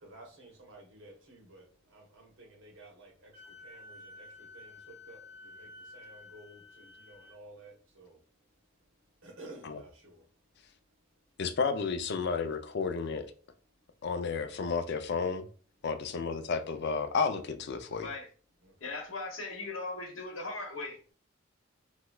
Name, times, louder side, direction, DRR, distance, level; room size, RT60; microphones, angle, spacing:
voice 1, 0.0-3.3 3.6-4.3 4.5-5.2 5.5-8.2 9.2-10.2 18.6-18.9, right 2 dB, 75° right, 1.1 m, -53 dB
Wind instrument woodwind instrument, 3.3-7.4, left 2 dB, 15° right, 1.2 m, -51 dB
voice 2, 11.4-13.3 14.0-15.5 15.8-18.1, left 5 dB, 60° left, 0.4 m, -32 dB
voice 3, 18.0-18.3 18.8-21.1, left 3 dB, 90° left, 0.9 m, -39 dB
3.3 x 2.9 x 2.3 m
head